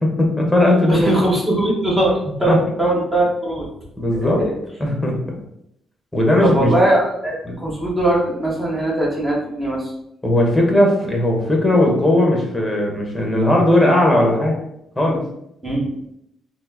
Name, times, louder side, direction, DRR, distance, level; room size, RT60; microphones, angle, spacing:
voice 1, 0.0-1.1 2.5-2.6 4.0-4.4 4.8-5.2 6.1-6.7 7.5-7.6 10.2-14.5 15.0-15.2, left 1 dB, 5° left, 0 dB, 1.1 m, -17 dB
voice 2, 0.9-3.7 4.4-4.5 6.4-9.9 15.6-15.9, right 1 dB, 20° right, -4 dB, 1.1 m, -20 dB
4.3 x 2.1 x 2.8 m, 0.78 s
cardioid pair, 90°, 0 cm